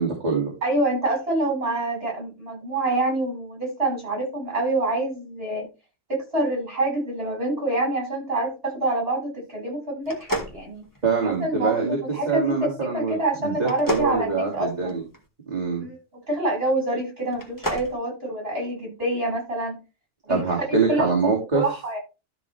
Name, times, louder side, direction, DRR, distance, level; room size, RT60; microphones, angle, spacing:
voice 1, 0.0-0.5 11.0-12.0 12.3-15.0 15.5-15.9 20.3-21.6, right 4 dB, 35° right, -3 dB, 2.8 m, -24 dB
voice 2, 0.6-5.7 6.1-10.8 11.2-12.5 12.8-14.9 15.8-16.0 16.3-19.8 20.3-20.4 20.9-21.1 21.5-22.0, right 2 dB, 55° right, -1 dB, 7.5 m, -26 dB
sound 1, 10.0-11.4 13.6-15.2 17.3-17.9, right 1 dB, 15° left, 2.0 m, -32 dB
13.0 x 6.3 x 3.4 m, 0.28 s
omnidirectional pair, 1.2 m